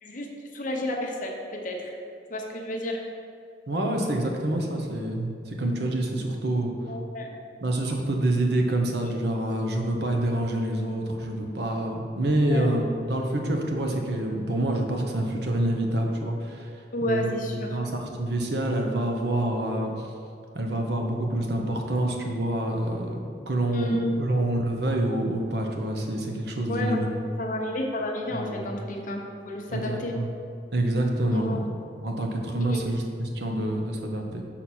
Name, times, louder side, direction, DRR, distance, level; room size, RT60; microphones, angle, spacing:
voice 1, 0.0-1.9 2.3-3.0 6.9-7.3 9.0-9.2 12.4-12.7 16.9-17.8 23.7-24.2 26.7-27.0 27.4-30.1 31.3-31.6 32.7-32.9, left 1 dB, 45° left, 0 dB, 0.9 m, -31 dB
voice 2, 3.7-6.7 7.6-16.7 17.0-17.3 17.7-19.9 20.5-23.2 23.5-27.1 28.3-28.5 29.7-30.2 30.7-31.7 32.0-34.4, right 1 dB, 60° right, 1 dB, 0.9 m, -27 dB
5.9 x 4.2 x 6.1 m, 2.5 s
head